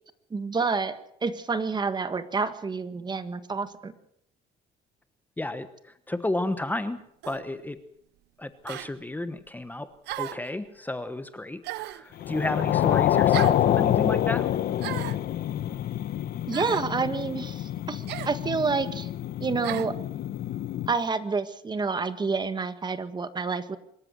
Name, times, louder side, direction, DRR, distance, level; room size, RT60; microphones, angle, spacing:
voice 1, 0.3-3.9 16.5-19.1 19.4-19.9 20.9-23.8, right 4 dB, 25° right, 11 dB, 1.6 m, -29 dB
voice 2, 5.4-7.0 7.3-7.8 8.4-9.9 10.2-14.5, left 2 dB, 10° left, 11 dB, 1.1 m, -32 dB
sound 1, 7.2-7.5 8.7-8.9 10.1-10.5 11.6-12.1 13.3-13.6 14.8-15.2 16.5-16.9 18.1-18.4 19.6-19.9, right 16 dB, 80° right, 0.8 m, -35 dB
sound 2, 12.2-21.0, left 12 dB, 65° left, 1.1 m, -27 dB
25.0 x 13.5 x 7.7 m, 0.74 s
cardioid pair, 110°, 17 cm